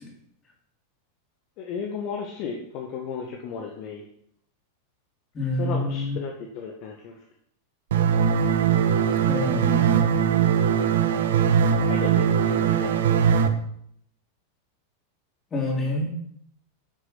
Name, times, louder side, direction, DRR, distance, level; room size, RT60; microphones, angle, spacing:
voice 1, 1.6-4.0 5.6-7.2 11.8-13.1, left 6 dB, 40° left, 1 dB, 1.9 m, -34 dB
voice 2, 5.3-6.2 9.2-10.2 15.5-16.1, left 2 dB, 20° left, -1 dB, 4.6 m, -27 dB
sound 1, 7.9-13.5, right 8 dB, 60° right, 1.2 m, -21 dB
12.0 x 8.3 x 6.2 m, 0.68 s
figure-of-eight pair, 90°, 0 cm